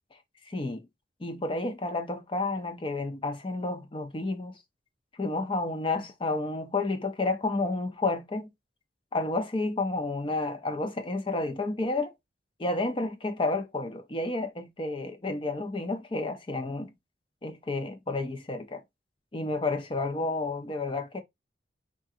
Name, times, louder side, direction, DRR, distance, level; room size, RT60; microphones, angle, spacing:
voice 1, 0.5-0.8 1.2-4.6 5.2-8.5 9.1-12.1 12.6-16.9 17.4-18.8 19.3-21.2, left 2 dB, 30° left, 0.5 m, -31 dB
3.8 x 3.7 x 2.5 m
head